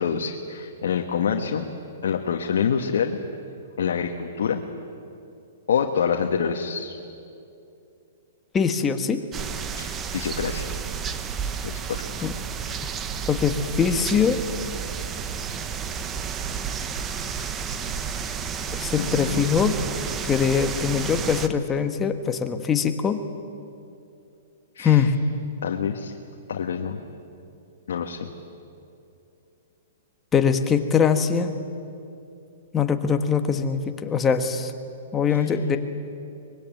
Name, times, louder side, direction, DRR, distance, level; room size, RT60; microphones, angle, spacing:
voice 1, 0.0-1.6 2.0-3.2 3.8-4.6 5.7-7.0 9.8-10.7 11.6-12.0 19.0-19.5 24.7-25.1 25.6-26.1 26.5-27.0 27.9-28.3 35.3-35.5, left 7 dB, 75° left, 2 dB, 1.5 m, -26 dB
voice 2, 8.5-9.2 12.2-12.3 13.3-14.4 18.7-19.7 20.3-23.2 24.8-25.1 30.3-31.5 32.7-34.7 35.1-35.8, left 6 dB, 15° left, 7 dB, 1.4 m, -22 dB
sound 1, 9.3-21.5, right 7 dB, 20° right, 1.1 m, -31 dB
sound 2, 15.0-20.2, right 1 dB, 35° right, 7.4 m, -44 dB
24.0 x 21.0 x 9.2 m, 2.6 s
hypercardioid pair, 150°, 0 cm